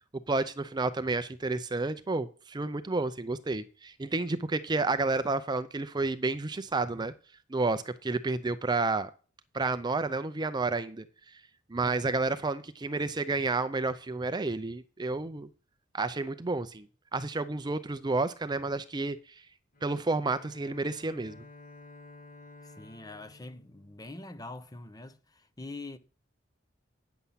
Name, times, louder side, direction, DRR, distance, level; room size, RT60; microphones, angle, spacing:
voice 1, 0.3-7.1 7.5-9.1 9.5-11.0 11.7-15.5 15.9-16.9 17.1-19.2 19.8-21.4, right 3 dB, 20° right, 0.5 m, -30 dB
Bowed string instrument, 19.7-24.5, left 2 dB, 50° left, 1.6 m, -53 dB
voice 2, 22.6-26.0, left 2 dB, 20° left, 0.7 m, -44 dB
9.6 x 7.0 x 5.7 m
head